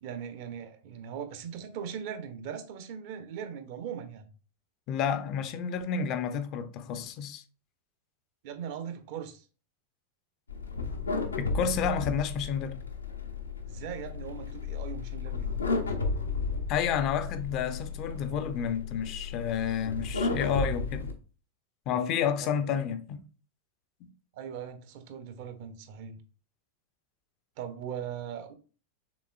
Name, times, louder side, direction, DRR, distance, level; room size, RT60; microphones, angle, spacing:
voice 1, 0.0-4.3 8.4-9.4 13.7-15.9 22.4-22.5 24.3-26.2 27.6-28.5, right 8 dB, 50° right, 0.7 m, -40 dB
voice 2, 4.9-7.4 11.4-12.8 16.7-21.2 21.9-23.2, left 7 dB, 40° left, 0.5 m, -30 dB
sound 1, 10.5-21.1, left 4 dB, 75° left, 0.7 m, -33 dB
6.1 x 3.6 x 2.3 m
figure-of-eight pair, 90°, 0 cm